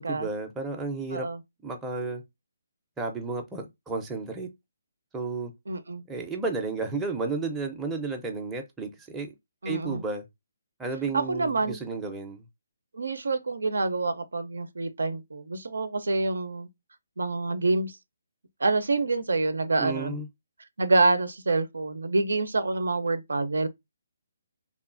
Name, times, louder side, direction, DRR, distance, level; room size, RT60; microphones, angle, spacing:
voice 1, 0.0-1.3 1.6-2.2 3.0-4.5 5.1-5.5 6.1-9.3 9.6-10.2 10.8-12.4 19.8-20.3, right 3 dB, 10° right, 0.5 m, -32 dB
voice 2, 5.7-6.0 9.6-10.0 11.1-11.8 12.9-16.7 17.2-18.0 18.6-20.2 20.8-23.7, right 3 dB, 85° right, 0.5 m, -27 dB
3.0 x 2.3 x 2.5 m
hypercardioid pair, 155°, 0 cm